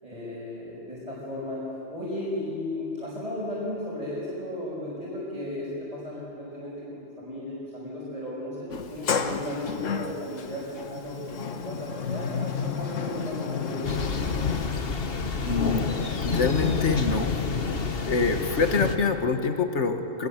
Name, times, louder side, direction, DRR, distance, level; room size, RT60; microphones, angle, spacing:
voice 1, 0.0-13.8, left 1 dB, 30° right, -7 dB, 5.9 m, -35 dB
Sliding door, 8.7-14.7, left 6 dB, 90° left, 1.5 m, -32 dB
Thunder, 13.8-19.0, left 4 dB, 50° left, 1.5 m, -28 dB
voice 2, 15.4-15.9 16.3-17.4 18.0-20.3, left 4 dB, 70° left, 6 dB, 1.8 m, -25 dB
23.5 x 22.0 x 7.4 m, 2.7 s
omnidirectional pair, 1.3 m